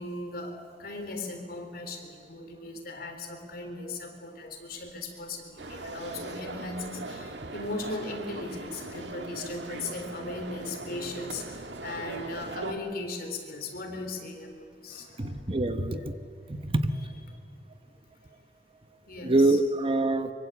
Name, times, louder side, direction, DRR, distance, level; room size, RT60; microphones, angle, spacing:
voice 1, 0.0-15.4 15.9-16.1 19.1-19.6, left 2 dB, 60° left, 4 dB, 3.9 m, -38 dB
sound 1, 5.6-12.7, right 2 dB, 80° right, 1.9 m, -40 dB
voice 2, 15.2-16.1 16.5-17.1 19.2-20.3, right 2 dB, 30° right, 9 dB, 1.0 m, -25 dB
24.5 x 24.0 x 8.4 m, 2.2 s
head